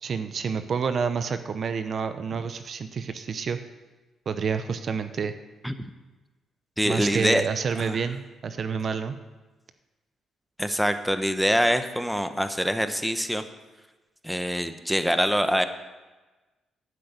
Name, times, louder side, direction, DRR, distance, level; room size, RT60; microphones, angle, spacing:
voice 1, 0.0-3.6 4.3-5.3 6.8-9.2, right 6 dB, 50° right, 10 dB, 0.7 m, -29 dB
voice 2, 6.8-7.4 7.8-8.0 10.6-13.4 14.2-15.6, equal, ahead, 9 dB, 0.9 m, -24 dB
12.5 x 6.4 x 8.3 m, 1.2 s
cardioid pair, 90°, 0 cm